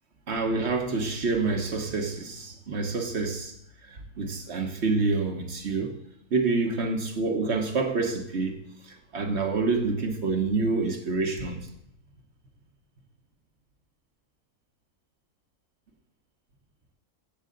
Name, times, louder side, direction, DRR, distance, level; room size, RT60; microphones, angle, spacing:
voice 1, 0.3-3.5 3.9-5.9 6.3-8.6 8.8-11.6, right 3 dB, 50° right, 4 dB, 1.3 m, -27 dB
15.0 x 7.1 x 3.8 m, 0.77 s
omnidirectional pair, 1.6 m